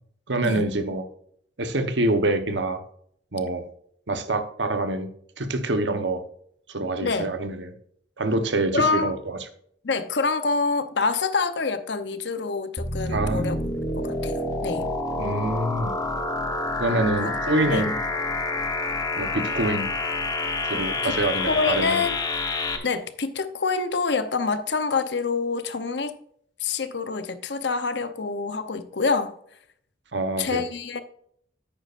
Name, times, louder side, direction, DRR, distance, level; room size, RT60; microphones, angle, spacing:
voice 1, 0.3-1.1 1.6-2.8 3.3-3.6 4.1-5.1 5.4-6.2 6.7-7.7 8.2-9.2 13.1-13.4 15.2-15.9 16.8-17.9 19.2-19.9 20.6-22.0 30.1-30.6, right 2 dB, 90° right, 1.1 m, -25 dB
voice 2, 7.0-7.3 8.7-9.1 9.8-14.9 17.7-17.9 21.0-22.2 22.8-26.1 26.6-29.3 30.4-31.0, left 4 dB, 75° left, 0.8 m, -26 dB
sound 1, 12.8-22.8, left 2 dB, 20° left, 1.1 m, -28 dB
10.5 x 8.7 x 2.6 m
head